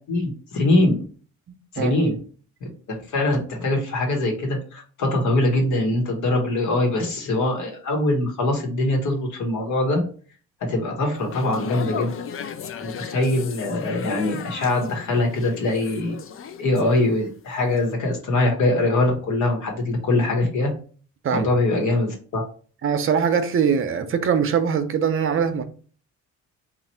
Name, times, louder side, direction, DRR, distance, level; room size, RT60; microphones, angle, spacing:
voice 1, 0.1-1.0 1.7-2.2 2.9-10.0 10.7-12.1 12.8-16.2 16.6-20.7 21.3-22.4, left 2 dB, 75° left, 1.3 m, -22 dB
sound 1, 11.1-17.4 17.7-17.9, left 7 dB, 45° left, 0.5 m, -36 dB
voice 2, 22.8-25.6, right 7 dB, 45° right, 0.6 m, -22 dB
3.1 x 2.5 x 4.3 m
cardioid pair, 90°, 30 cm